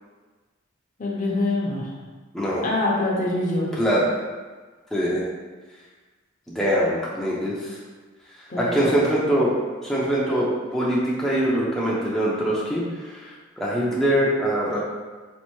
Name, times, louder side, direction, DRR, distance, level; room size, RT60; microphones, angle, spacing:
voice 1, 1.0-1.9 2.6-3.7 8.5-8.9, left 2 dB, 40° left, -3 dB, 0.7 m, -24 dB
voice 2, 2.3-2.7 3.7-4.0 4.9-5.2 6.5-7.8 8.6-9.5 9.8-14.8, equal, ahead, -7 dB, 0.5 m, -23 dB
4.3 x 2.5 x 3.0 m, 1.3 s
head